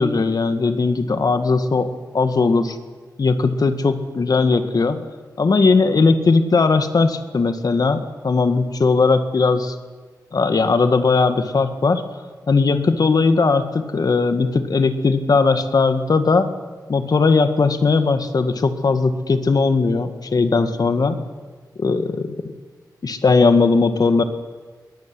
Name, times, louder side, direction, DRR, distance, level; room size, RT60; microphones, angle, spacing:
voice 1, 0.0-1.9 2.1-2.8 3.2-5.1 5.4-9.7 10.3-12.1 12.5-16.6 16.9-21.3 21.8-22.3 23.0-24.2, left 4 dB, 65° left, 9 dB, 2.0 m, -18 dB
22.0 x 19.0 x 9.8 m, 1.4 s
wide cardioid pair, 90°, 7 cm